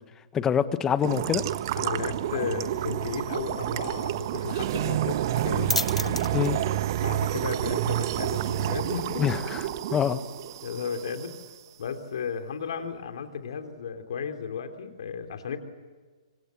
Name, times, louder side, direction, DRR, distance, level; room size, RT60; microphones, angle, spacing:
voice 1, 0.3-1.4 6.3-6.6 9.2-9.6 9.9-10.2, left 8 dB, 15° left, 13 dB, 1.3 m, -25 dB
sound 1, 1.0-11.4, right 12 dB, 45° right, 1.2 m, -29 dB
voice 2, 1.8-6.2 7.0-9.3 10.6-11.3 11.8-15.6, left 6 dB, 55° left, 6 dB, 3.4 m, -34 dB
sound 2, 5.1-12.4, left 2 dB, 85° left, 0.9 m, -38 dB
27.0 x 25.0 x 7.9 m, 1.4 s
figure-of-eight pair, 120°, 3 cm